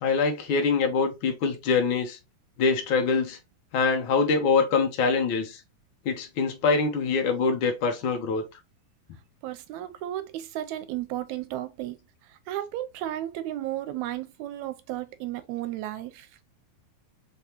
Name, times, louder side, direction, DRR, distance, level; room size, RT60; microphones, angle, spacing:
voice 1, 0.0-2.2 2.6-3.4 3.7-5.6 6.0-8.4, left 4 dB, 75° left, 1.1 m, -24 dB
voice 2, 9.4-12.0 12.2-16.3, right 13 dB, 85° right, 1.9 m, -34 dB
4.5 x 3.5 x 2.9 m
omnidirectional pair, 3.3 m